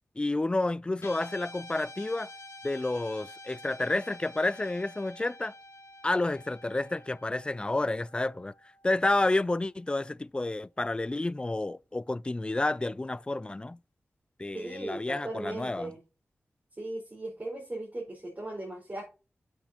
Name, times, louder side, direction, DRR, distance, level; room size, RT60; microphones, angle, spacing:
voice 1, 0.2-2.3 2.6-5.5 6.0-8.5 8.8-13.8 14.4-15.9, left 2 dB, 20° left, 0.3 m, -30 dB
Guitar, 1.0-9.5, left 2 dB, 75° left, 2.2 m, -49 dB
voice 2, 14.5-16.0 16.8-19.0, right 2 dB, 40° right, 4.4 m, -38 dB
7.6 x 7.3 x 2.8 m
cardioid pair, 55°, 5 cm